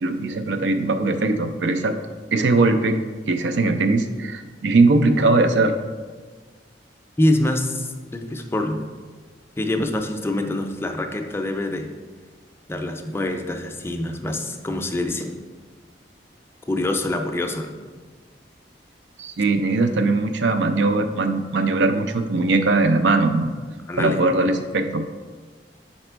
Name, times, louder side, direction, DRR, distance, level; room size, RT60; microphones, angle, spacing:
voice 1, 0.0-1.9 2.3-3.0 3.3-5.7 19.2-23.5 24.0-25.0, right 3 dB, 90° right, 7 dB, 0.5 m, -20 dB
voice 2, 7.2-8.8 9.6-11.9 12.7-15.4 16.7-17.7 23.9-24.2, left 1 dB, 15° left, 4 dB, 0.4 m, -25 dB
5.0 x 4.2 x 4.4 m, 1.4 s
head